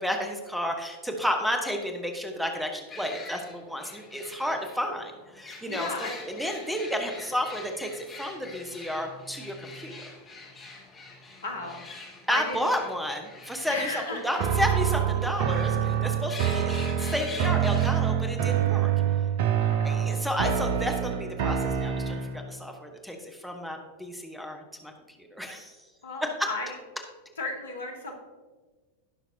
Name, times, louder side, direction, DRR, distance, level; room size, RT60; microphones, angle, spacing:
voice 1, 0.0-9.9 12.3-18.9 19.8-24.9 25.2-25.8 26.4-26.5, equal, ahead, 4 dB, 1.2 m, -32 dB
sound 1, 2.9-18.3, left 3 dB, 25° left, 2.7 m, -45 dB
voice 2, 5.6-6.1 11.4-11.8 12.3-12.6 13.7-14.3 19.6-20.0 26.0-26.7 27.4-28.2, left 2 dB, 70° left, 2 dB, 1.7 m, -34 dB
sound 2, 14.4-22.5, right 9 dB, 50° right, 0.7 m, -26 dB
17.5 x 5.9 x 2.8 m, 1.3 s
figure-of-eight pair, 90°, 0 cm